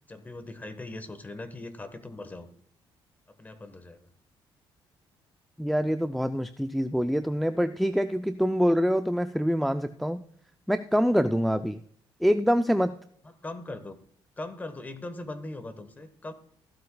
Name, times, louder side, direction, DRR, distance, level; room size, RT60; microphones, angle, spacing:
voice 1, 0.1-2.5 3.4-4.1 13.2-14.0 14.4-16.3, left 2 dB, 20° left, 10 dB, 1.1 m, -40 dB
voice 2, 5.6-10.2 10.7-11.8 12.2-13.0, equal, ahead, 10 dB, 0.3 m, -25 dB
15.0 x 12.0 x 2.3 m, 0.62 s
cardioid pair, 125°, 9 cm